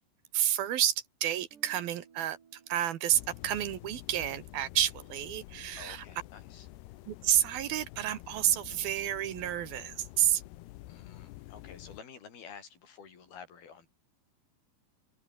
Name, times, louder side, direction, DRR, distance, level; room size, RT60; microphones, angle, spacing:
voice 1, 0.3-6.0 7.1-10.4, right 12 dB, 70° right, 3.0 m, -30 dB
Guitar, 1.5-5.5, right 7 dB, 90° right, 6.0 m, -63 dB
sound 1, 3.1-12.0, left 17 dB, 85° left, 2.9 m, -49 dB
voice 2, 5.8-6.7 10.9-13.9, left 6 dB, 65° left, 5.7 m, -50 dB
omnidirectional pair, 4.8 m